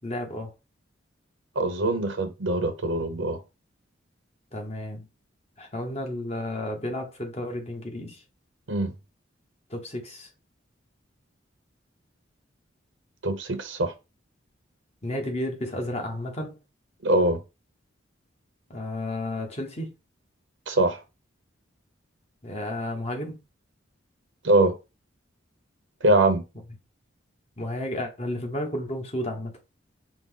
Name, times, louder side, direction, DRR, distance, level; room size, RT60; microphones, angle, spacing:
voice 1, 0.0-0.5 4.5-5.1 5.6-8.2 9.7-10.3 15.0-16.6 18.7-19.9 22.4-23.4 27.6-29.6, left 1 dB, 30° left, 1.0 m, -32 dB
voice 2, 1.6-3.4 8.7-8.9 13.2-13.9 17.0-17.4 20.7-21.0 24.4-24.7 26.0-26.4, right 2 dB, 70° right, 0.8 m, -23 dB
5.1 x 2.1 x 3.7 m
head